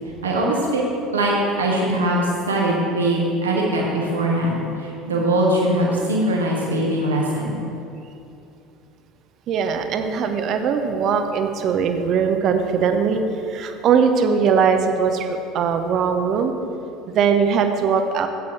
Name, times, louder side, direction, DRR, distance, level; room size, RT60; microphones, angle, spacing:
voice 1, 0.2-0.8 1.1-7.6, right 1 dB, 80° right, -3 dB, 1.3 m, -21 dB
voice 2, 9.5-13.2 13.5-16.5 17.1-18.3, right 6 dB, 45° right, 6 dB, 0.7 m, -20 dB
12.5 x 8.5 x 3.3 m, 2.7 s
figure-of-eight pair, 65°, 0 cm